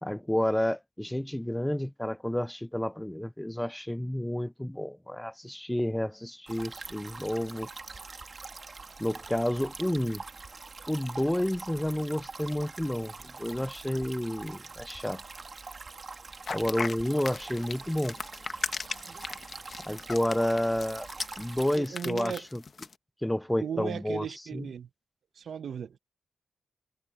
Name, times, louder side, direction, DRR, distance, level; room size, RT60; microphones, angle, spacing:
voice 1, 0.0-7.7 9.0-10.2 10.9-15.2 16.5-18.2 19.8-21.1 21.4-22.6 23.2-24.3 24.5-24.6, left 1 dB, 10° left, 0.5 m, -30 dB
sound 1, 6.5-21.8, right 4 dB, 45° right, 2.0 m, -44 dB
sound 2, 16.4-22.9, left 4 dB, 55° left, 1.4 m, -37 dB
voice 2, 21.8-22.4 23.6-24.9 25.4-26.0, right 7 dB, 75° right, 1.2 m, -36 dB
cardioid pair, 55°, 0 cm